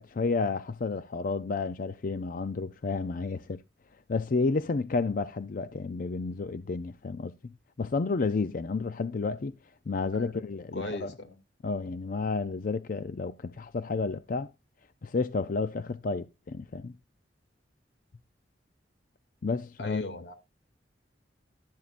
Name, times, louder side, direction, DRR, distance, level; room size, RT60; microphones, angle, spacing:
voice 1, 0.0-3.6 4.1-7.5 7.8-9.6 9.9-11.1 11.6-14.5 15.0-16.9 19.4-20.0, left 4 dB, 50° left, 0.5 m, -31 dB
voice 2, 10.1-10.4 10.7-11.4 19.8-20.3, left 1 dB, 75° left, 2.4 m, -37 dB
12.0 x 11.5 x 2.5 m
head